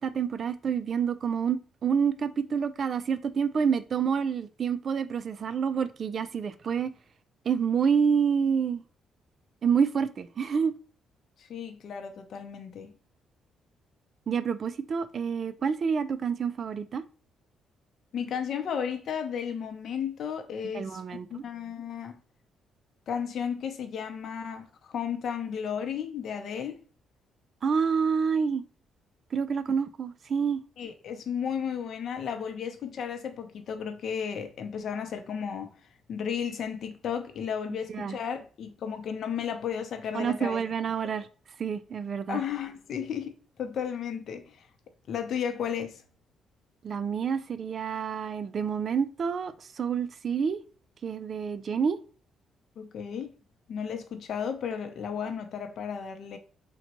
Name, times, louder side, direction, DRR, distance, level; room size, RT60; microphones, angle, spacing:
voice 1, 0.0-6.9 7.5-8.8 9.6-10.7 14.3-17.0 20.7-21.4 27.6-28.6 29.3-30.6 37.9-38.2 40.1-41.3 41.6-42.4 46.8-50.6 51.0-52.0, right 6 dB, 50° right, 0.3 m, -28 dB
voice 2, 11.4-12.9 18.1-22.2 23.1-26.8 30.8-35.7 36.1-40.6 42.3-43.3 43.6-44.7 45.1-46.0 52.8-53.3 53.7-56.4, left 7 dB, 65° left, 0.6 m, -34 dB
3.9 x 2.2 x 2.9 m
cardioid pair, 90°, 0 cm